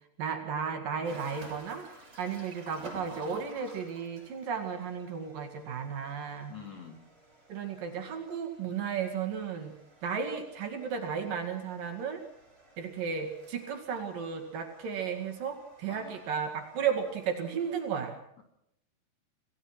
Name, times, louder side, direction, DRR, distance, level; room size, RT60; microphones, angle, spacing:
voice 1, 0.2-1.9 2.2-6.5 7.5-9.7 10.0-12.2 12.8-18.2, right 6 dB, 60° right, 5 dB, 3.4 m, -34 dB
sound 1, 1.1-17.9, right 1 dB, 25° right, 5.6 m, -54 dB
voice 2, 6.5-7.0 15.9-16.2 18.4-18.5, left 7 dB, 45° left, 3 dB, 4.2 m, -46 dB
26.5 x 17.5 x 6.0 m, 0.73 s
omnidirectional pair, 4.7 m